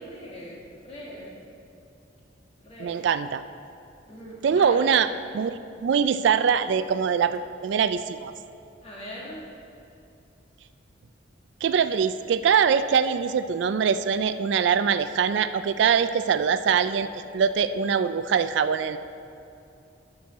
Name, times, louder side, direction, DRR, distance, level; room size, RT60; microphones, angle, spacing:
voice 1, 0.0-1.3 2.6-3.1 4.1-4.9 8.8-9.5, equal, 30° left, -4 dB, 1.9 m, -41 dB
voice 2, 2.8-3.4 4.4-5.1 5.3-8.3 11.6-17.1 17.3-19.0, right 7 dB, 65° right, 12 dB, 0.3 m, -23 dB
12.0 x 6.2 x 4.2 m, 2.7 s
head